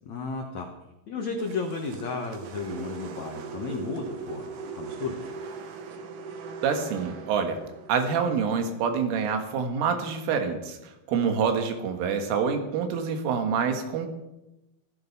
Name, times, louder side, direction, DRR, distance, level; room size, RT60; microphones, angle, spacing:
voice 1, 0.0-0.7 1.1-5.2, left 4 dB, 85° left, 3 dB, 1.5 m, -33 dB
sound 1, 1.4-9.7, right 5 dB, 65° right, 2.0 m, -40 dB
voice 2, 6.6-7.6 7.9-14.1, right 6 dB, 90° right, 6 dB, 4.2 m, -26 dB
15.0 x 14.5 x 5.4 m, 0.96 s
omnidirectional pair, 5.5 m